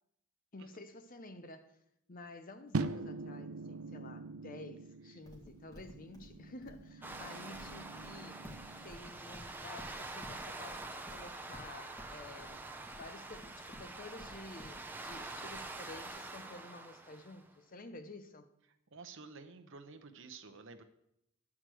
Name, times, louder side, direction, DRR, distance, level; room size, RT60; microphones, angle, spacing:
voice 1, 0.5-1.8 2.1-8.4 8.7-12.6 13.0-18.5, left 2 dB, 40° left, 0.7 m, -51 dB
sound 1, 2.7-9.0, right 3 dB, 70° right, 0.5 m, -43 dB
Livestock farm animals working animals, 5.3-16.1, equal, 15° left, 1.8 m, -54 dB
sound 2, 7.0-17.5, right 2 dB, 10° right, 0.6 m, -46 dB
voice 2, 18.9-20.8, right 4 dB, 55° right, 0.9 m, -51 dB
11.0 x 4.8 x 7.6 m
head